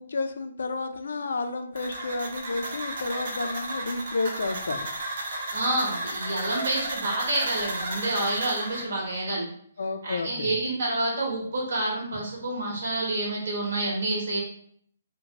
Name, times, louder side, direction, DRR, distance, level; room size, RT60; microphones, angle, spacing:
voice 1, 0.0-4.9 9.8-10.5, left 3 dB, 65° left, 7 dB, 0.3 m, -31 dB
sound 1, 1.8-8.8, right 1 dB, 35° right, 0.5 m, -33 dB
voice 2, 5.5-9.5 10.0-14.4, right 2 dB, 60° right, -2 dB, 1.0 m, -28 dB
2.8 x 2.1 x 2.7 m, 0.62 s
hypercardioid pair, 180°, 0 cm